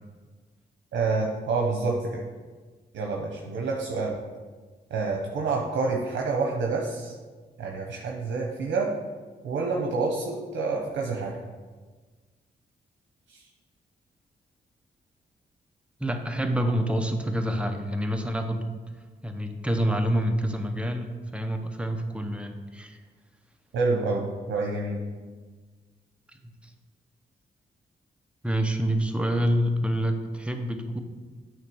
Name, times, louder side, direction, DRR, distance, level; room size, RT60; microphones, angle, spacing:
voice 1, 0.9-2.2 2.9-4.2 4.9-7.1 7.6-8.9 9.4-11.3 13.3-13.4 23.7-25.0, right 3 dB, 85° right, -1 dB, 0.8 m, -28 dB
voice 2, 16.0-18.6 19.2-21.1 21.3-23.0 26.6-26.7 28.4-31.0, equal, 5° right, 4 dB, 0.9 m, -27 dB
9.0 x 3.2 x 6.2 m, 1.4 s
cardioid pair, 80°, 18 cm